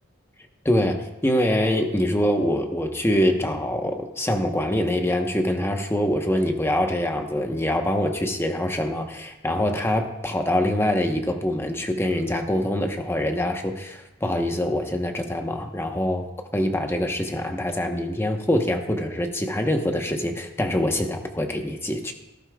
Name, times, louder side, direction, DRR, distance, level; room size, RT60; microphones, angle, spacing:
voice 1, 0.6-16.2 16.5-22.1, left 1 dB, 10° left, 4 dB, 1.0 m, -24 dB
18.5 x 11.5 x 2.3 m, 0.96 s
head